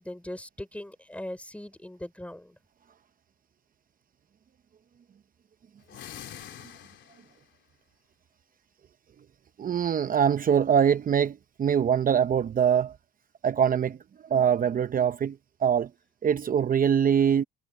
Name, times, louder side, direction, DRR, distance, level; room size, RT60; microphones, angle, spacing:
voice 1, 0.0-2.6, left 1 dB, 5° left, 5.1 m, -40 dB
sound 1, 5.8-7.5, left 11 dB, 70° left, 3.4 m, -44 dB
voice 2, 9.6-13.0 13.4-14.0 14.2-15.9 16.2-17.4, right 8 dB, 45° right, 0.8 m, -23 dB
cardioid pair, 90°, 20 cm